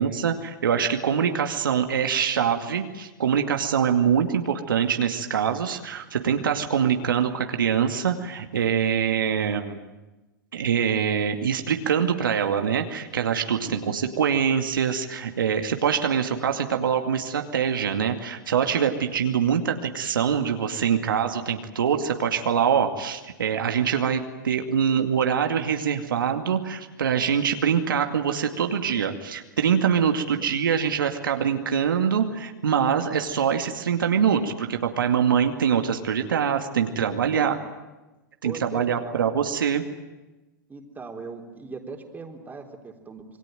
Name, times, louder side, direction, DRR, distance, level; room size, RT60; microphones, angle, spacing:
voice 1, 0.0-9.8 10.5-37.6 38.4-39.8, right 7 dB, 85° right, 5 dB, 2.3 m, -24 dB
voice 2, 38.4-39.3 40.7-43.3, right 4 dB, 15° right, 2 dB, 3.9 m, -39 dB
27.5 x 21.5 x 9.2 m, 1.1 s
hypercardioid pair, 115°, 11 cm